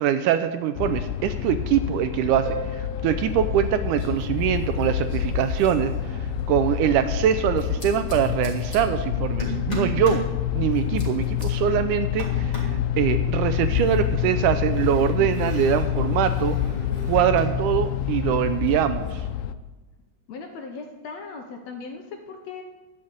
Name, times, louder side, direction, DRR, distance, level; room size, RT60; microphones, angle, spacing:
voice 1, 0.0-2.5 2.7-5.9 6.5-10.2 10.6-12.7 13.0-16.6 17.1-19.2, right 10 dB, 80° right, 10 dB, 1.9 m, -23 dB
sound 1, 0.8-19.5, left 10 dB, 90° left, 2.3 m, -27 dB
Harp, 2.5-5.0 8.5-8.6, right 1 dB, 50° right, 2.7 m, -39 dB
sound 2, 3.1-3.7 3.9-6.6 7.6-8.8 9.4-10.3 10.7-11.5 12.2-12.8 13.6-17.6 17.8-19.1, right 1 dB, 15° left, 2.6 m, -39 dB
voice 2, 20.3-22.6, left 4 dB, 70° left, 3 dB, 1.8 m, -38 dB
11.5 x 5.6 x 8.6 m, 1.2 s
omnidirectional pair, 3.9 m